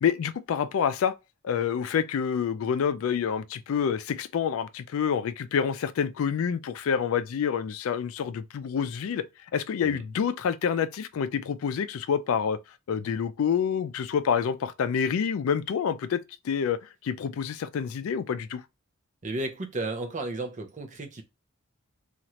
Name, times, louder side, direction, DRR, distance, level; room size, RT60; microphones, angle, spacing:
voice 1, 0.0-1.1 1.4-9.3 9.5-12.6 12.9-18.6, left 7 dB, 70° left, 0.3 m, -27 dB
voice 2, 19.2-21.2, right 2 dB, 35° right, 0.6 m, -33 dB
3.0 x 2.4 x 2.7 m
head